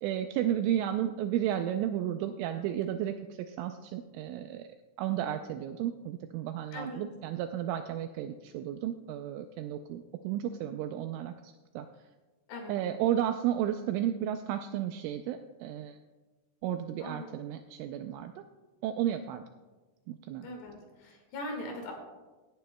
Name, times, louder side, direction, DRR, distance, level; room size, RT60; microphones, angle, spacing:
voice 1, 0.0-3.2 3.5-4.7 5.0-11.9 12.7-16.0 16.6-18.3 18.8-19.4 20.1-20.5, right 11 dB, 85° right, 7 dB, 2.8 m, -33 dB
voice 2, 6.7-7.1 12.5-12.7 17.0-17.3 20.4-20.8 21.0-21.9, left 1 dB, 65° left, 1 dB, 3.6 m, -40 dB
17.0 x 11.5 x 2.2 m, 1.2 s
omnidirectional pair, 5.9 m